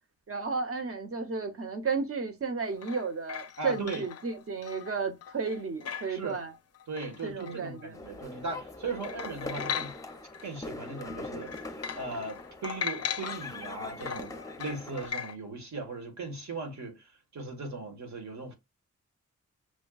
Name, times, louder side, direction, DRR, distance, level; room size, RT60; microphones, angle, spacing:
voice 1, 0.3-6.5 7.2-7.9, right 4 dB, 45° right, 0.9 m, -33 dB
sound 1, 2.6-8.3 8.7-8.8 9.0-10.5 10.8-15.4, left 8 dB, 55° left, 0.4 m, -39 dB
voice 2, 3.6-4.1 6.1-6.4 6.9-10.0 10.4-11.6 11.9-14.3 14.6-18.5, right 3 dB, 65° right, 1.4 m, -38 dB
sound 2, 7.9-15.1, left 2 dB, 10° left, 0.6 m, -42 dB
6.2 x 2.2 x 2.3 m
wide cardioid pair, 105°, 31 cm